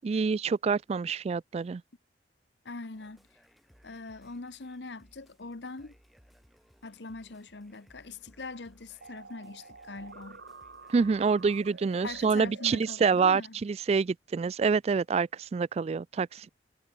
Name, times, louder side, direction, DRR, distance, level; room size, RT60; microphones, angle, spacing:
voice 1, 0.0-1.8 10.9-16.5, right 5 dB, 35° right, 0.3 m, -27 dB
voice 2, 2.6-3.2 3.8-6.0 6.8-10.4 12.0-13.6, left 3 dB, 80° left, 1.1 m, -42 dB
sound 1, 2.9-12.5, equal, ahead, 3.3 m, -62 dB
sound 2, 9.0-12.9, right 3 dB, 80° right, 2.5 m, -49 dB
head